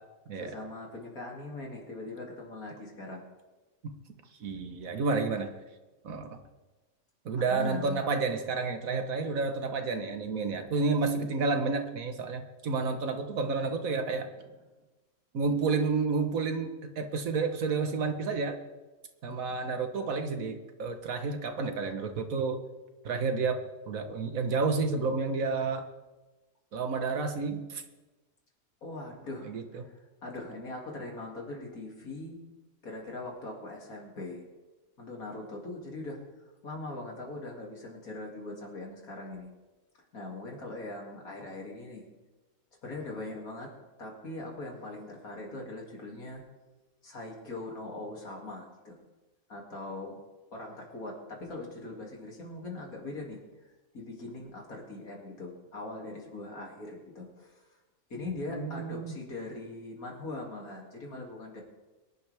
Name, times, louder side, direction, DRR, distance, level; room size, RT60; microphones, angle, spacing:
voice 1, 0.4-3.3 7.5-8.0 28.8-29.5 29.8-32.4 32.8-34.5 35.0-36.2 36.6-39.5 40.1-42.0 42.8-43.7 44.0-46.4 47.0-49.0 49.5-50.2 50.5-53.4 53.9-57.6 58.1-61.6, left 2 dB, 90° left, -1 dB, 3.1 m, -41 dB
voice 2, 4.4-5.5 6.0-6.4 7.2-14.3 15.3-18.6 19.2-22.6 23.0-25.9 26.7-27.8 29.4-29.9 58.5-59.2, right 4 dB, 75° right, 7 dB, 1.6 m, -30 dB
23.0 x 11.0 x 3.5 m, 1.2 s
omnidirectional pair, 1.5 m